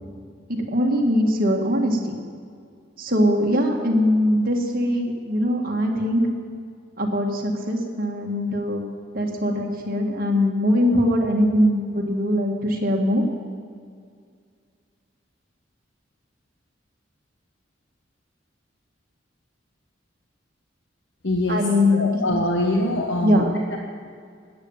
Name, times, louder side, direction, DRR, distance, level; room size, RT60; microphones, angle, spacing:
voice 1, 0.5-2.2 3.0-6.3 7.0-8.8 9.1-13.2 21.5-22.0 22.3-22.4 23.2-23.6, left 1 dB, 50° right, 1 dB, 1.8 m, -21 dB
voice 2, 21.2-23.8, left 1 dB, 65° left, 2 dB, 1.0 m, -24 dB
13.0 x 9.2 x 8.9 m, 2.2 s
head